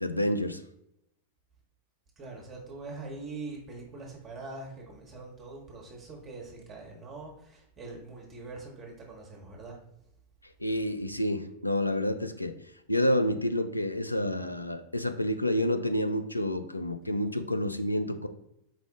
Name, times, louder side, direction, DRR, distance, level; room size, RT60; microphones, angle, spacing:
voice 1, 0.0-0.6 10.6-12.6 12.9-18.3, equal, 85° left, 8 dB, 0.3 m, -29 dB
voice 2, 2.2-9.8, right 3 dB, 25° right, -2 dB, 1.1 m, -43 dB
4.8 x 2.4 x 3.7 m, 0.80 s
figure-of-eight pair, 90°, 0 cm